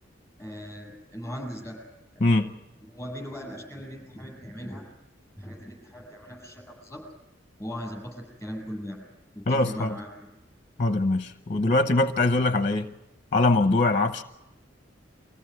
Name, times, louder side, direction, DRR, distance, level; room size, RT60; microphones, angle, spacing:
voice 1, 0.4-1.8 2.1-2.4 2.9-4.8 5.4-7.0 7.6-9.0 9.3-10.1, equal, 15° left, 1 dB, 7.7 m, -39 dB
voice 2, 2.2-2.5 9.5-10.0 10.8-12.9 13.3-14.2, left 2 dB, 40° left, 9 dB, 0.8 m, -22 dB
24.0 x 16.5 x 9.5 m, 0.94 s
head